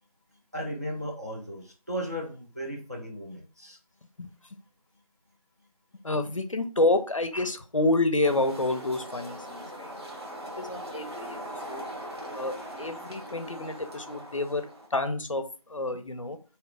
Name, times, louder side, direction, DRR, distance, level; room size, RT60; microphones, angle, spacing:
voice 1, 0.5-3.8, equal, 25° right, -1 dB, 0.6 m, -36 dB
voice 2, 6.0-9.9 10.6-11.4 11.7-11.9 12.3-16.4, left 2 dB, 55° left, 9 dB, 0.5 m, -28 dB
sound 1, 8.2-14.9, equal, 45° right, 1.1 m, -40 dB
3.6 x 2.9 x 3.2 m, 0.35 s
figure-of-eight pair, 170°, 19 cm